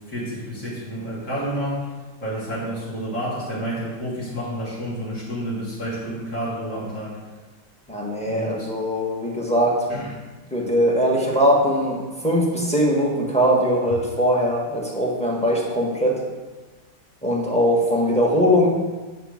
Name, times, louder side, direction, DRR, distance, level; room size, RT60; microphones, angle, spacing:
voice 1, 0.1-1.9 2.2-7.2 8.2-8.7 9.9-10.1, equal, 55° left, -9 dB, 3.3 m, -29 dB
voice 2, 7.9-9.8 10.5-16.1 17.2-18.7, equal, 5° left, -3 dB, 1.3 m, -21 dB
10.5 x 3.7 x 6.5 m, 1.3 s
omnidirectional pair, 2.2 m